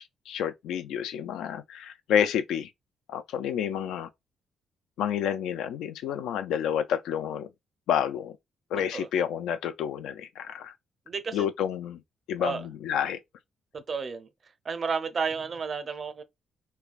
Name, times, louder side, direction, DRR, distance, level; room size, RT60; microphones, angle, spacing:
voice 1, 0.0-2.7 3.1-4.1 5.0-7.5 7.9-8.3 8.7-10.7 11.3-12.0 12.3-13.2, left 9 dB, 85° left, 0.3 m, -29 dB
voice 2, 11.1-11.4 12.4-12.6 13.9-14.3 14.7-16.2, right 5 dB, 45° right, 0.5 m, -31 dB
3.1 x 2.3 x 2.4 m
cardioid pair, 90°, 0 cm